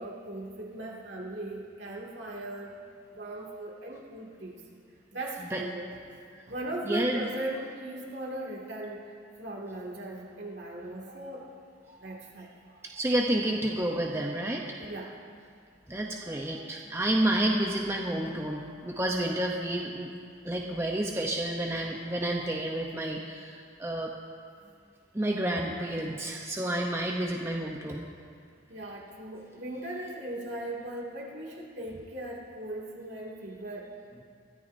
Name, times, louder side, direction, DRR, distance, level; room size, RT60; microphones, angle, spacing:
voice 1, 0.0-2.7 3.1-4.6 5.1-5.9 6.1-11.6 11.9-13.0 14.0-14.1 14.8-15.2 16.2-16.6 22.0-22.2 28.7-33.9, right 1 dB, 65° right, -3 dB, 2.3 m, -39 dB
voice 2, 6.9-7.3 12.8-14.7 15.9-20.1 20.4-24.1 25.1-28.0, right 1 dB, 15° right, 0 dB, 0.7 m, -30 dB
22.0 x 13.0 x 2.7 m, 2.3 s
head